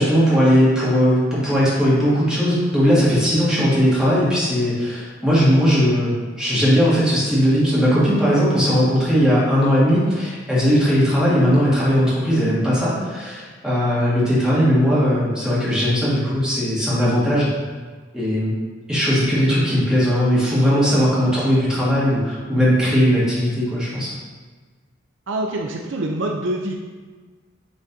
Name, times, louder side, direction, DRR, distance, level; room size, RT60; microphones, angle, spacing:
voice 1, 0.0-17.5 18.1-18.5 18.9-24.1, equal, 5° right, -9 dB, 1.8 m, -18 dB
voice 2, 25.3-26.7, right 1 dB, 65° right, 1 dB, 0.5 m, -25 dB
9.4 x 3.8 x 2.8 m, 1.4 s
head